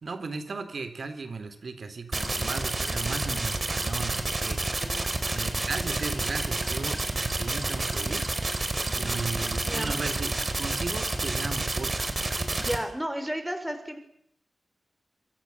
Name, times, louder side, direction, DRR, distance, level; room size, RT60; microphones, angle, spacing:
voice 1, 0.0-4.6 5.0-8.3 8.9-12.2, right 4 dB, 65° right, 9 dB, 4.0 m, -36 dB
sound 1, 2.1-12.8, right 2 dB, 35° right, 4.5 m, -29 dB
voice 2, 4.6-5.1 8.9-9.2 9.6-10.0 12.6-14.0, equal, 5° right, 8 dB, 5.0 m, -34 dB
27.5 x 24.5 x 7.4 m, 0.70 s
wide cardioid pair, 95°, 0 cm